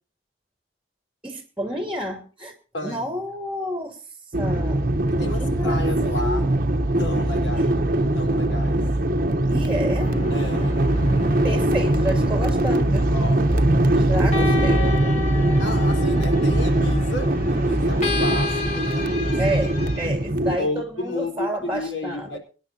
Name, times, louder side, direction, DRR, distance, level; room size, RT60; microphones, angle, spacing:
voice 1, 1.2-2.5 2.8-4.0 4.4-4.9 5.4-6.5 7.5-7.7 9.5-10.1 11.4-13.1 13.8-14.9 19.4-22.4, equal, 5° right, 2.8 m, -30 dB
voice 2, 2.7-3.1 5.1-6.4 7.0-7.7 8.1-8.8 10.3-11.0 13.1-13.4 14.4-15.2 15.6-19.6 20.6-22.4, left 1 dB, 85° left, 4.5 m, -32 dB
sound 1, 4.3-20.6, right 1 dB, 50° right, 1.1 m, -21 dB
sound 2, 10.0-20.1, left 3 dB, 40° left, 2.6 m, -32 dB
25.0 x 10.5 x 2.9 m
head